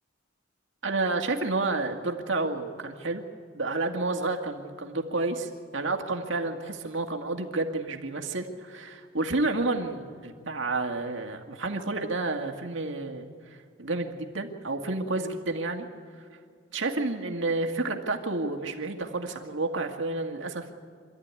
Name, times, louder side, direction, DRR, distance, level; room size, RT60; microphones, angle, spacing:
voice 1, 0.8-3.2 3.5-13.3 13.8-15.9 16.7-20.7, right 3 dB, 70° right, 3 dB, 2.0 m, -30 dB
26.0 x 13.5 x 9.6 m, 2.2 s
head